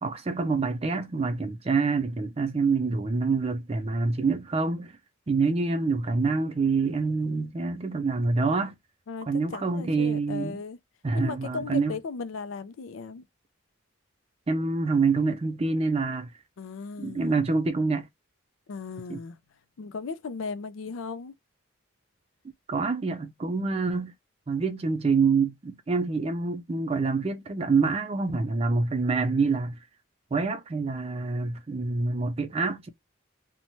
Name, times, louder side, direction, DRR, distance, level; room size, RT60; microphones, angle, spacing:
voice 1, 0.0-4.9 5.3-8.7 9.3-10.6 11.0-12.0 14.5-16.3 17.0-18.1 19.1-19.2 22.7-24.1 24.5-29.8 30.3-32.9, right 4 dB, 30° right, 0.4 m, -26 dB
voice 2, 9.1-10.8 11.1-13.3 16.6-17.4 18.7-19.4 19.8-21.4, left 5 dB, 75° left, 0.4 m, -36 dB
3.0 x 2.1 x 2.6 m
head